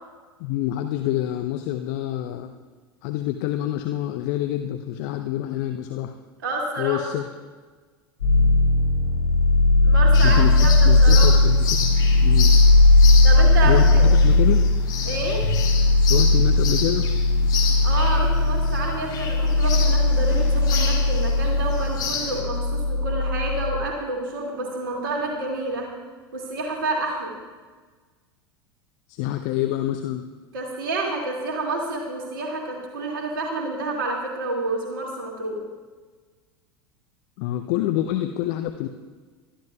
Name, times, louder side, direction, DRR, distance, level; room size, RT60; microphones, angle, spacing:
voice 1, 0.4-2.5 3.0-6.1 6.8-7.3 10.2-11.9 12.2-12.5 13.6-14.7 16.1-17.1 29.1-30.3 37.4-38.9, left 13 dB, 50° left, 6 dB, 0.7 m, -27 dB
voice 2, 6.4-7.0 9.8-11.3 13.2-14.1 15.0-15.4 17.8-25.9 26.3-27.4 30.5-35.6, right 2 dB, 65° right, -1 dB, 2.3 m, -29 dB
sound 1, 8.2-23.8, left 2 dB, 80° left, 4.7 m, -18 dB
sound 2, 10.1-22.4, left 6 dB, 35° left, 2.7 m, -31 dB
22.5 x 13.0 x 2.3 m, 1.4 s
figure-of-eight pair, 80°, 12 cm